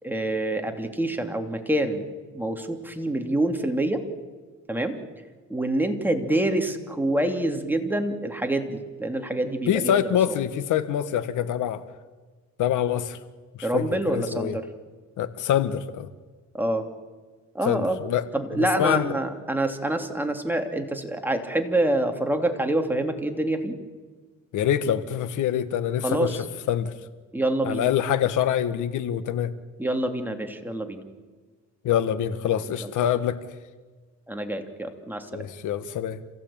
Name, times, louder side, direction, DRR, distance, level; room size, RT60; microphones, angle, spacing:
voice 1, 0.0-2.0 2.3-4.0 4.7-5.0 5.5-10.0 10.3-10.4 13.6-14.7 16.5-16.9 17.5-18.0 18.3-23.8 26.0-26.4 27.3-27.9 29.8-31.0 32.8-32.9 34.3-35.5, right 1 dB, 5° right, 4 dB, 3.0 m, -26 dB
voice 2, 9.7-11.8 12.6-13.2 13.7-14.6 15.2-16.1 17.7-18.2 18.6-19.1 24.5-26.9 27.6-29.5 31.8-33.4 35.3-36.2, left 10 dB, 80° left, 12 dB, 1.6 m, -25 dB
27.5 x 16.0 x 8.8 m, 1.4 s
cardioid pair, 90°, 30 cm